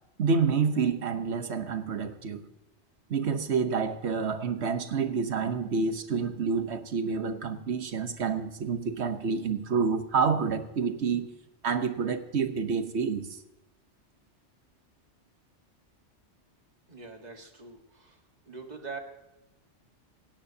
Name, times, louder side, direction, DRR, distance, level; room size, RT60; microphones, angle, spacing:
voice 1, 0.2-2.5 3.1-11.3 11.6-13.4, right 5 dB, 65° right, 9 dB, 1.3 m, -28 dB
voice 2, 16.9-18.2 18.5-19.0, right 4 dB, 35° right, 3 dB, 1.7 m, -43 dB
17.5 x 16.5 x 2.8 m, 0.95 s
omnidirectional pair, 1.2 m